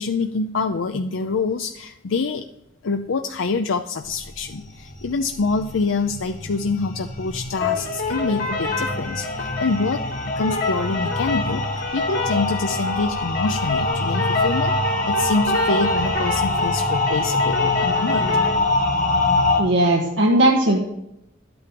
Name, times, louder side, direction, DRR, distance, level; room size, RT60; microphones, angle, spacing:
voice 1, 0.0-2.4 2.8-10.0 10.4-18.3, left 4 dB, 85° left, 7 dB, 0.5 m, -26 dB
sound 1, 4.1-19.6, left 2 dB, 40° left, 1.5 m, -25 dB
sound 2, 7.6-18.6, left 3 dB, 60° left, 3.5 m, -27 dB
voice 2, 19.6-20.8, right 1 dB, 70° right, -1 dB, 1.4 m, -17 dB
12.0 x 8.7 x 5.2 m, 0.84 s
head